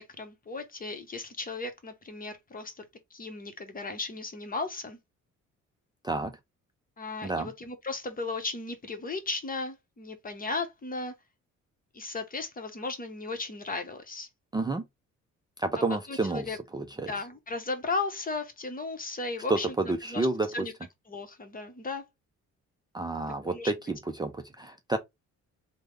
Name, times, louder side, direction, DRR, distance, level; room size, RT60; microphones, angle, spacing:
voice 1, 0.0-2.8 3.1-5.0 7.0-11.1 11.9-14.3 16.1-16.6 17.1-20.3 20.5-20.7 21.1-22.0 23.4-23.7, left 3 dB, 30° left, 0.9 m, -35 dB
voice 2, 14.5-14.8 15.6-17.1 19.5-20.5 22.9-25.0, right 3 dB, 15° right, 0.4 m, -30 dB
3.3 x 2.2 x 3.2 m
cardioid pair, 90°, 30 cm